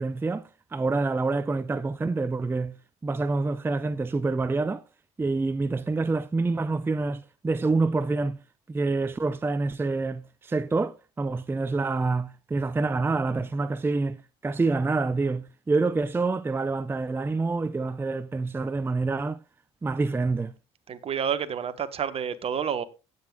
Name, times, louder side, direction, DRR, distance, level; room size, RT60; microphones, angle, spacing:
voice 1, 0.0-2.8 3.0-4.8 5.2-8.4 8.7-19.4 19.8-20.5, right 3 dB, 15° right, 0.5 m, -27 dB
voice 2, 20.9-22.8, right 8 dB, 40° right, 1.2 m, -29 dB
17.0 x 8.1 x 2.4 m
hypercardioid pair, 70°, 15 cm